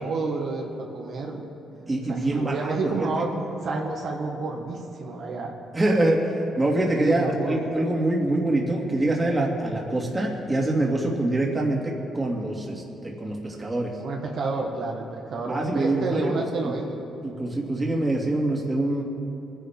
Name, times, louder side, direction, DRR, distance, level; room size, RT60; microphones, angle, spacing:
voice 1, 0.0-1.4 2.1-5.6 7.0-7.6 14.0-17.0, right 3 dB, 65° right, -1 dB, 1.7 m, -30 dB
voice 2, 1.9-3.1 5.7-13.9 15.5-16.3 16.6-16.7 17.2-19.0, right 1 dB, 20° right, -1 dB, 2.3 m, -25 dB
22.5 x 10.0 x 3.6 m, 2.8 s
cardioid pair, 90°, 0 cm